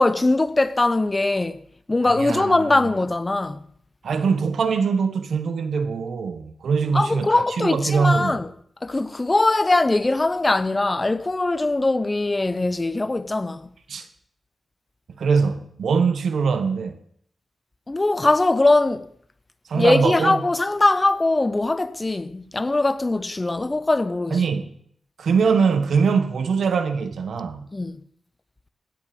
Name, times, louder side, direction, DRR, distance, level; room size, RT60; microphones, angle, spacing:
voice 1, 0.0-1.6 1.9-3.7 6.9-8.5 8.8-13.7 17.9-19.1 19.7-24.4 27.7-28.0, left 2 dB, 25° left, 0.7 m, -21 dB
voice 2, 2.0-2.9 4.0-7.3 7.6-8.4 13.9-14.1 15.2-17.0 19.7-20.4 24.3-24.8 25.2-27.7, right 5 dB, 80° right, 1.4 m, -22 dB
16.5 x 11.0 x 5.2 m
cardioid pair, 75°, 0 cm